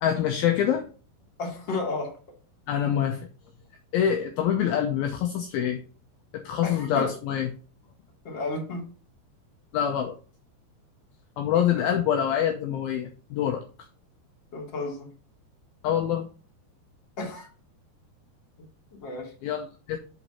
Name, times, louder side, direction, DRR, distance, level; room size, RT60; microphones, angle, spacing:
voice 1, 0.0-0.9 2.7-3.2 3.9-5.8 6.3-7.5 9.7-10.2 11.4-13.7 15.8-16.3 19.4-20.0, left 9 dB, 80° left, 4 dB, 2.3 m, -25 dB
voice 2, 1.4-2.2 6.6-7.1 8.2-8.9 11.5-11.6 14.5-15.1 17.2-17.5 18.9-19.3, left 3 dB, 30° left, -1 dB, 2.4 m, -32 dB
8.3 x 4.1 x 5.5 m, 0.37 s
omnidirectional pair, 5.0 m